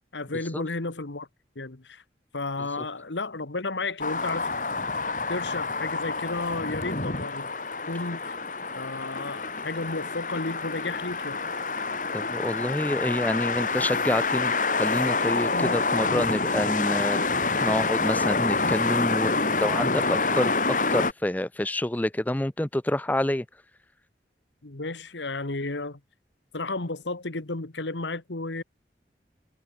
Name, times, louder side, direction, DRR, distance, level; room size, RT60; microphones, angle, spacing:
voice 1, 0.1-1.3 1.5-2.0 2.3-4.5 5.3-7.5 7.9-8.4 8.7-11.4 15.5-15.8 24.6-26.0 26.5-28.6, left 3 dB, 85° left, 1.7 m, -33 dB
sound 1, 4.0-21.1, left 3 dB, 45° left, 2.7 m, -27 dB
voice 2, 12.1-23.5, left 1 dB, 10° left, 0.4 m, -28 dB
head